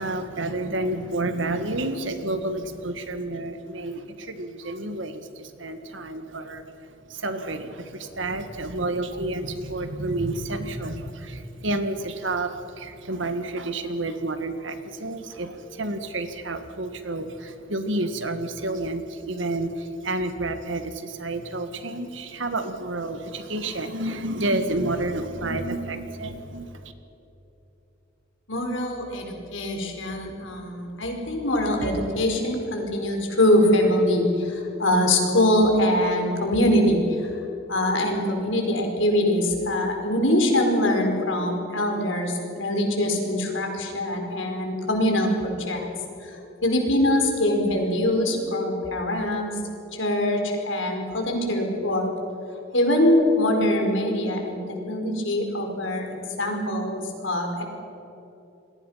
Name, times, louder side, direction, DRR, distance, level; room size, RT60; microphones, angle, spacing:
voice 1, 0.0-6.7 7.1-26.9, right 2 dB, 70° right, 8 dB, 1.9 m, -30 dB
voice 2, 28.5-37.3 37.7-45.9 46.2-49.5 49.9-52.1 52.7-56.1 56.4-57.6, left 1 dB, 80° left, 2 dB, 4.9 m, -23 dB
28.5 x 22.0 x 5.8 m, 2.9 s
head